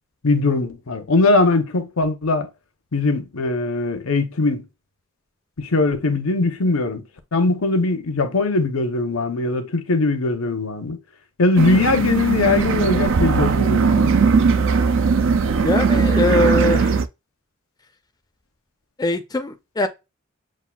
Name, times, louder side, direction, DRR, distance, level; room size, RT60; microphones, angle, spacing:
voice 1, 0.2-2.5 2.9-4.6 5.6-7.0 7.3-11.0 11.4-14.2, left 3 dB, 80° left, 0.8 m, -20 dB
sound 1, 11.6-17.1, right 5 dB, 65° right, 0.4 m, -18 dB
voice 2, 15.6-16.9 19.0-19.9, left 1 dB, 20° left, 0.4 m, -21 dB
7.3 x 2.4 x 2.3 m
head